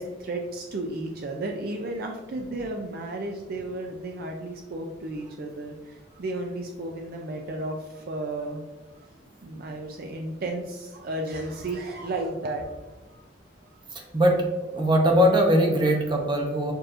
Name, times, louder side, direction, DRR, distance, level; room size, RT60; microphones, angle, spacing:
voice 1, 0.0-8.6 9.4-13.2 13.6-13.7, right 2 dB, 50° right, 2 dB, 0.4 m, -33 dB
voice 2, 13.9-14.4 14.7-16.7, equal, 25° right, 1 dB, 0.7 m, -21 dB
6.7 x 2.9 x 2.5 m, 1.2 s
head